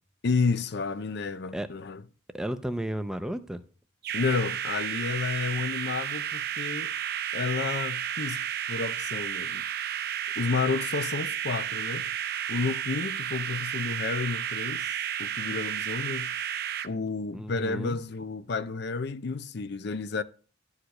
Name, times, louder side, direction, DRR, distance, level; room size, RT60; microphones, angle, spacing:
voice 1, 0.2-2.0 4.1-6.9 7.3-8.4 8.7-9.6 10.4-12.1 12.5-14.9 15.2-16.3 16.8-20.2, left 4 dB, 55° left, 0.5 m, -31 dB
voice 2, 2.3-3.6 17.3-18.0, right 1 dB, 5° right, 0.6 m, -33 dB
sound 1, 4.0-16.9, right 10 dB, 50° right, 0.6 m, -32 dB
11.5 x 4.9 x 6.4 m
head